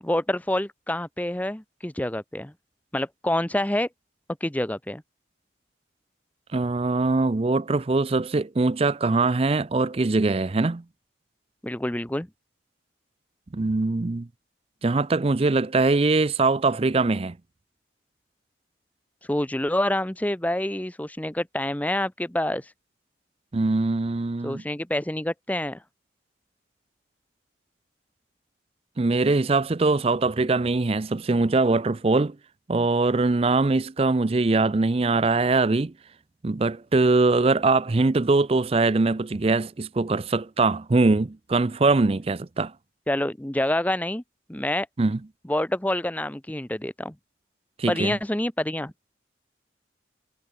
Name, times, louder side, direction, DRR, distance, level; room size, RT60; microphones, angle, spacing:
voice 1, 0.0-2.5 2.9-3.9 4.4-5.0 11.6-12.3 19.3-22.7 24.4-25.8 43.1-44.2 44.5-44.9 45.5-47.2 47.9-48.9, left 1 dB, 10° left, 0.7 m, -27 dB
voice 2, 6.5-10.8 13.5-14.3 14.8-17.4 23.5-24.6 29.0-32.4 32.7-35.9 36.4-42.7 45.0-45.2 47.8-48.2, right 3 dB, 30° right, 0.5 m, -22 dB
head